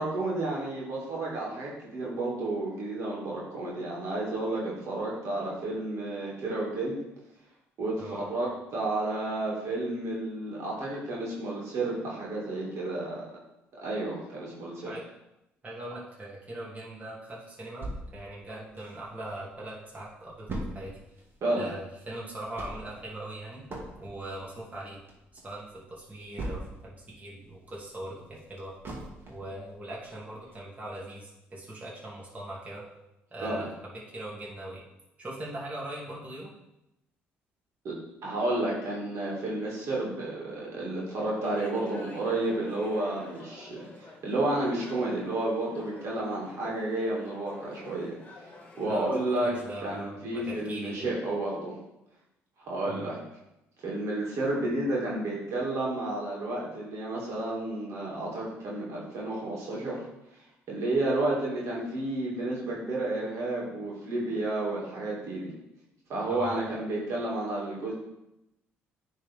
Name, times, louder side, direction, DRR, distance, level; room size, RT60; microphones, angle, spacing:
voice 1, 0.0-7.0 7.8-13.2 13.8-14.9 21.4-21.7 33.4-33.7 37.8-37.9 38.2-48.2 48.8-51.7 52.6-53.2 53.8-60.0 60.7-65.5 66.1-67.9, right 2 dB, 60° right, -5 dB, 2.4 m, -31 dB
voice 2, 15.6-20.9 21.6-23.6 24.0-25.0 25.4-28.7 29.3-32.8 33.3-34.8 35.2-36.5 48.9-49.1 49.4-51.1 52.9-53.1 66.3-66.5, right 1 dB, 25° right, -5 dB, 2.5 m, -40 dB
sound 1, 17.8-19.4 19.7-19.8 20.0-27.0 27.4-29.6 30.0-30.1 30.5-30.6, right 1 dB, 40° right, 2.1 m, -40 dB
sound 2, 41.4-50.0, left 2 dB, 25° left, 1.9 m, -48 dB
9.7 x 3.9 x 3.6 m, 0.91 s
hypercardioid pair, 60°, 6 cm